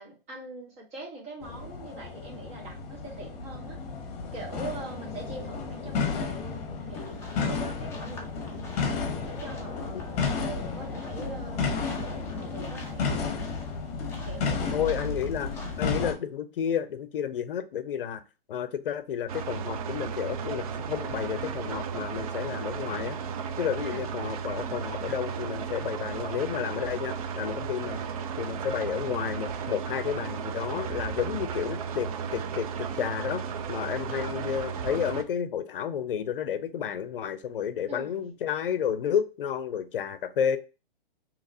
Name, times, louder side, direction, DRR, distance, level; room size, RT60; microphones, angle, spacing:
voice 1, 0.0-3.8 4.3-8.7 9.2-13.4 14.2-15.1 23.8-24.1 34.1-34.4 37.9-38.2, right 2 dB, 20° right, -1 dB, 1.3 m, -43 dB
sound 1, 1.4-16.1, left 4 dB, 45° left, 1.0 m, -32 dB
sound 2, 6.9-15.8, left 1 dB, 10° left, 0.6 m, -48 dB
voice 2, 14.7-18.2 18.5-23.2 23.6-28.0 28.4-33.4 33.7-40.6, left 8 dB, 65° left, 12 dB, 0.6 m, -31 dB
sound 3, 19.3-35.2, right 6 dB, 40° right, 0.5 m, -34 dB
3.8 x 2.9 x 2.6 m, 0.32 s
hypercardioid pair, 140°, 29 cm